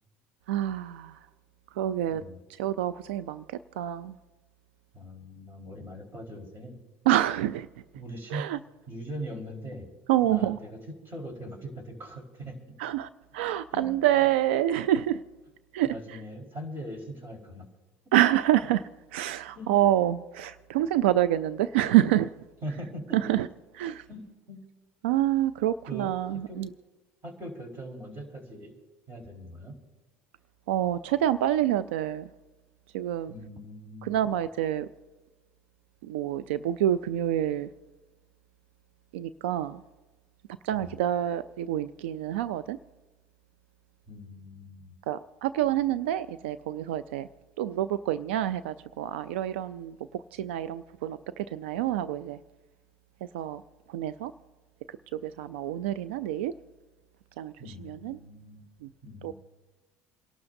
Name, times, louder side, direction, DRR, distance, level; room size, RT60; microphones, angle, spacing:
voice 1, 0.5-1.3 1.7-2.2 2.6-4.2 7.1-7.7 8.3-8.6 10.1-10.6 12.8-15.2 15.7-15.9 18.1-18.8 19.1-22.3 23.1-23.5 23.8-24.1 25.0-26.7 30.7-32.3 32.9-33.3 34.0-34.9 36.0-37.7 39.1-39.8 40.6-42.8 45.1-47.3 47.6-52.4 53.3-53.6 53.9-54.3 54.9-56.5 57.4-57.5 57.8-58.2 58.8-58.9 59.2-59.3, right 12 dB, 90° right, 14 dB, 0.3 m, -27 dB
voice 2, 4.9-6.8 7.9-8.5 8.9-9.9 10.2-12.6 13.7-13.9 14.1-14.2 15.8-17.7 19.6-19.7 22.6-23.4 24.1-24.6 25.9-26.6 27.2-28.7 29.1-29.8 33.3-34.1 40.7-41.0 44.1-45.0 57.6-58.7 59.0-59.3, equal, 40° right, 2 dB, 4.4 m, -41 dB
28.5 x 12.0 x 2.6 m, 1.2 s
supercardioid pair, 85°, 6 cm